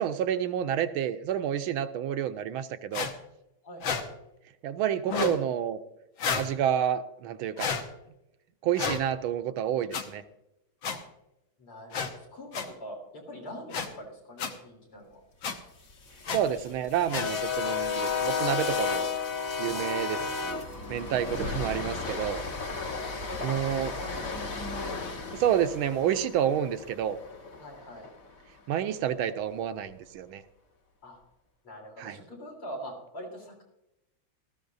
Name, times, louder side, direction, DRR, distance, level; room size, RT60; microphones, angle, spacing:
voice 1, 0.0-3.1 4.6-5.8 6.3-7.7 8.6-10.2 16.3-19.1 19.6-20.2 20.4-22.4 23.4-23.9 25.3-27.2 28.7-30.4 32.0-32.2, right 10 dB, 80° right, 10 dB, 1.4 m, -29 dB
sound 1, 2.9-3.1 3.8-4.0 5.1-5.4 6.2-6.5 7.6-7.8 8.8-9.0 9.9-10.0 10.8-11.0 11.9-12.1 12.5-12.7 13.7-13.9 14.4-14.5 15.4-15.5 16.3-16.4 17.1-17.3, left 5 dB, 65° left, 1.7 m, -30 dB
voice 2, 3.6-4.1 10.8-11.0 11.6-15.2 19.7-19.8 20.1-20.6 23.3-24.6 25.5-25.9 27.6-28.1 31.0-31.2 31.6-33.6, equal, 85° left, -1 dB, 4.3 m, -43 dB
sound 2, 15.9-28.1, left 5 dB, 45° left, 1.6 m, -33 dB
18.5 x 14.0 x 2.6 m, 0.88 s
omnidirectional pair, 2.4 m